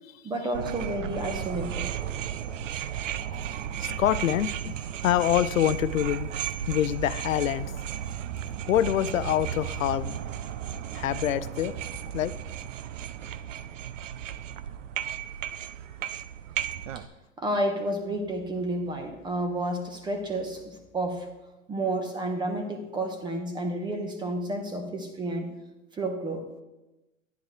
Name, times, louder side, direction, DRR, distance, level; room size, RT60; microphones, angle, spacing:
voice 1, 0.2-1.9 16.9-17.0 17.4-21.3 21.7-25.5 25.9-26.4, right 1 dB, 10° right, 5 dB, 1.1 m, -31 dB
sound 1, 0.5-17.1, right 10 dB, 70° right, 0.7 m, -34 dB
voice 2, 3.8-4.8 5.0-6.3 6.7-7.7 8.7-10.2 10.9-11.7 12.1-12.3, left 11 dB, 85° left, 15 dB, 0.6 m, -25 dB
10.5 x 10.0 x 3.2 m, 1.0 s
hypercardioid pair, 135°, 39 cm